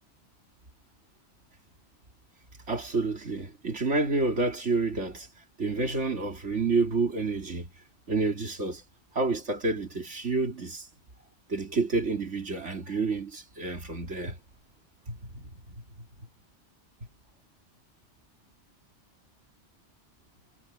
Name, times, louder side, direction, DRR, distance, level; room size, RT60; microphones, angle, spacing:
voice 1, 2.7-5.3 5.6-7.7 8.1-8.8 9.1-10.9 11.5-14.4 15.1-15.4, right 3 dB, 90° right, 3.3 m, -29 dB
omnidirectional pair, 1.2 m